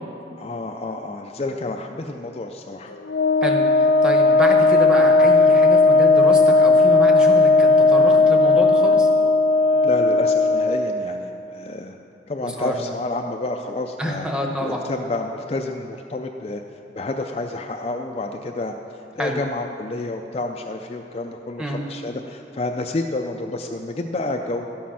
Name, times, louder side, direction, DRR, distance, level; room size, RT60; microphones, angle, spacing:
voice 1, 0.4-2.9 9.7-11.9 12.3-14.3 14.6-16.6 17.0-18.7 19.2-24.7, left 2 dB, 35° left, 3 dB, 0.4 m, -29 dB
Wind instrument woodwind instrument, 3.1-10.9, left 3 dB, 85° left, 0.5 m, -16 dB
voice 2, 3.4-9.1 12.4-12.7 14.0-14.9 19.2-19.4 21.6-21.8, equal, 5° right, 1 dB, 0.9 m, -27 dB
12.0 x 7.4 x 5.7 m, 2.7 s
head